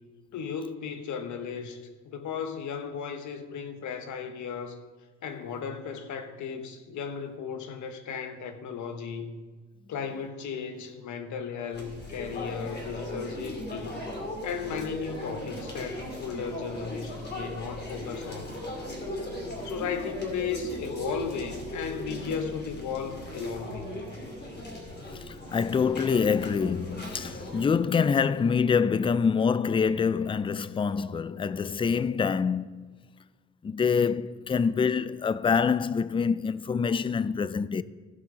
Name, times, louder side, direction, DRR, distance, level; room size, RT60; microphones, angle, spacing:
voice 1, 0.3-4.8 5.2-9.4 9.9-14.0 14.4-18.6 19.6-24.0, left 6 dB, 75° left, 1.1 m, -35 dB
sound 1, 11.7-27.7, left 1 dB, 35° left, 3.0 m, -38 dB
voice 2, 25.1-32.9 33.6-37.8, left 6 dB, 20° left, 0.3 m, -26 dB
15.0 x 5.5 x 5.1 m
cardioid pair, 90°, 30 cm